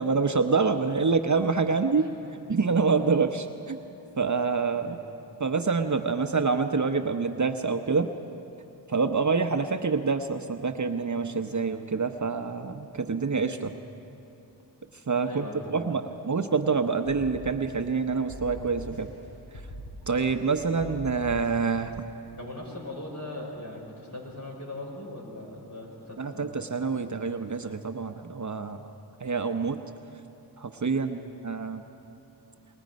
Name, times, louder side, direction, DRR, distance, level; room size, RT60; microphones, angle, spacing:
voice 1, 0.0-3.8 4.2-5.0 5.4-8.1 8.9-13.8 15.1-19.1 20.1-21.9 26.2-28.9 29.2-29.8 30.6-31.2 31.4-31.8, right 4 dB, 45° right, 7 dB, 0.8 m, -26 dB
voice 2, 4.1-5.0 15.2-16.0 20.7-20.8 22.4-26.6 30.9-31.1, left 1 dB, 45° left, -2 dB, 5.8 m, -40 dB
sound 1, 17.0-18.0 18.3-19.3 19.5-20.5 20.8-21.8, equal, 70° left, 5.3 m, -42 dB
25.0 x 21.0 x 5.3 m, 2.9 s
cardioid pair, 50°, 42 cm